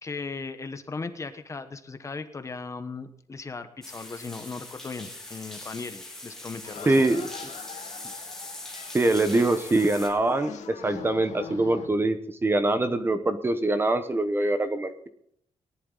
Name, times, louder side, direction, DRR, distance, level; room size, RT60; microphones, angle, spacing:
voice 1, 0.0-7.0, left 4 dB, 25° left, 9 dB, 1.1 m, -37 dB
sound 1, 3.8-10.1, left 2 dB, 5° left, 3.0 m, -41 dB
sound 2, 6.6-11.9, left 7 dB, 85° left, 1.8 m, -42 dB
voice 2, 6.9-7.3 8.9-15.1, right 2 dB, 20° right, 9 dB, 0.9 m, -24 dB
18.5 x 11.0 x 3.9 m, 0.70 s
wide cardioid pair, 175°, 12 cm